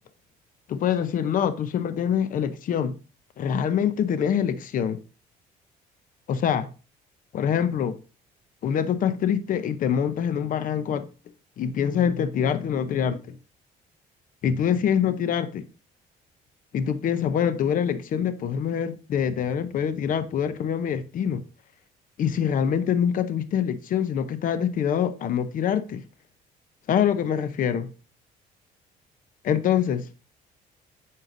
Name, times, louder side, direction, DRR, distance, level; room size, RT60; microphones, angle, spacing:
voice 1, 0.7-2.9 3.4-5.0 6.3-6.7 7.3-8.0 8.6-11.1 11.6-13.4 14.4-15.6 16.7-21.4 22.2-26.0 26.9-27.9 29.4-30.1, left 8 dB, 55° left, 0.8 m, -25 dB
9.3 x 5.7 x 2.6 m
cardioid pair, 110°, 17 cm